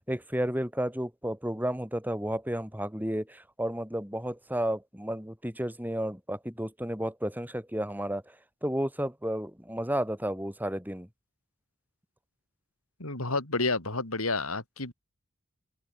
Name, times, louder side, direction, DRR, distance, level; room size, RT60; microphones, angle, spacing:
voice 1, 0.1-8.4 8.6-11.1, right 1 dB, 10° right, 7.6 m, -32 dB
voice 2, 13.0-14.9, left 3 dB, 80° left, 6.2 m, -30 dB
head